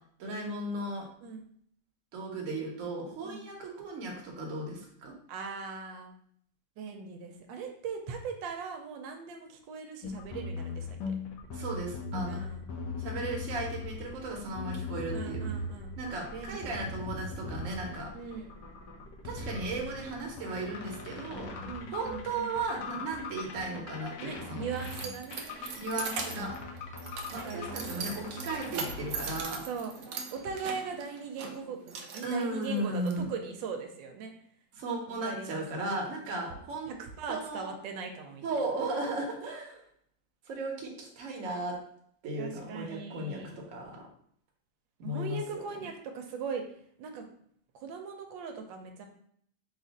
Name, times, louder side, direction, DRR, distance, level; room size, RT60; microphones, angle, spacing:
voice 1, 0.2-1.1 2.1-5.1 11.5-12.4 13.0-15.4 16.0-18.1 19.2-21.6 21.9-24.7 25.8-26.5 27.3-29.7 32.2-33.3 34.7-36.9 37.3-37.7 38.4-39.8 40.5-41.8 42.2-44.0 45.0-45.6, right 2 dB, 55° right, -1 dB, 1.1 m, -36 dB
voice 2, 5.3-6.2 6.8-10.9 12.3-12.6 15.1-15.9 16.3-16.9 18.1-18.5 21.6-22.6 24.2-25.5 27.4-28.1 29.7-29.9 30.3-34.3 35.1-35.6 36.9-38.4 42.4-43.6 45.0-46.6 47.0-47.3 47.7-49.1, right 5 dB, 90° right, 4 dB, 1.3 m, -40 dB
sound 1, 10.0-29.4, left 3 dB, 75° left, 1.2 m, -40 dB
Keys jangling, 24.0-33.1, right 5 dB, 70° right, 0.8 m, -41 dB
3.7 x 2.5 x 4.0 m, 0.66 s
omnidirectional pair, 2.0 m